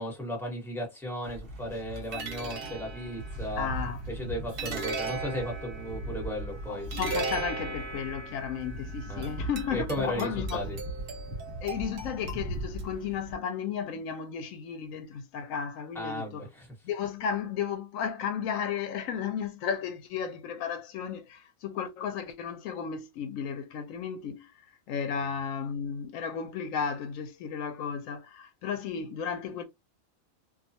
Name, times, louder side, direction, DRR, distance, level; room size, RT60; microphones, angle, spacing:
voice 1, 0.0-3.7 4.1-6.9 9.1-9.3 9.7-10.8 15.9-16.7, equal, ahead, 1.1 m, -35 dB
sound 1, 1.2-13.3, right 2 dB, 50° right, 1.0 m, -36 dB
voice 2, 3.6-4.0 6.7-10.7 11.6-16.5 16.8-29.6, left 7 dB, 80° left, 1.0 m, -34 dB
2.4 x 2.3 x 2.7 m
omnidirectional pair, 1.4 m